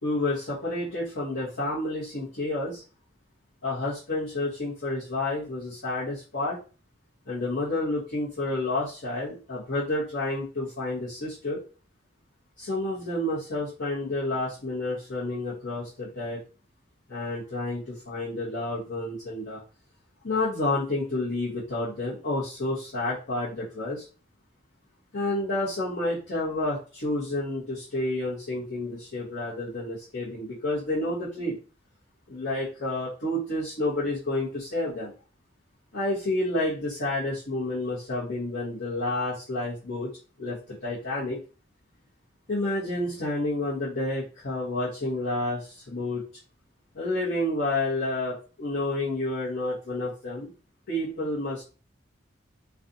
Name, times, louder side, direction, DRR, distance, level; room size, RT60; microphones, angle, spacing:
voice 1, 0.0-2.8 3.6-6.6 7.2-11.6 12.6-16.4 17.1-19.6 20.2-24.1 25.1-31.6 32.3-35.1 35.9-40.1 40.4-41.4 42.5-46.2 46.9-50.5 50.9-51.6, left 2 dB, 85° left, -10 dB, 1.0 m, -30 dB
2.5 x 2.3 x 2.6 m, 0.36 s
head